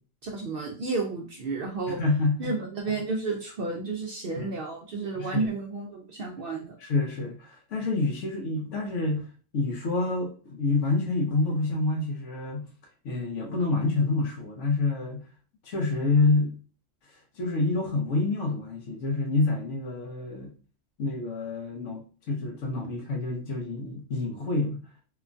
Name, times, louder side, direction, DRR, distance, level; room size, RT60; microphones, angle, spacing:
voice 1, 0.2-2.0 2.4-6.8, right 3 dB, 60° right, 0 dB, 0.6 m, -32 dB
voice 2, 1.9-2.5 4.4-4.5 5.2-5.5 6.8-9.3 9.5-12.7 13.0-15.2 15.6-16.6 17.4-20.5 21.0-22.0 22.3-24.8, left 3 dB, 70° left, 2 dB, 1.1 m, -27 dB
3.0 x 2.2 x 2.5 m, 0.38 s
omnidirectional pair, 1.3 m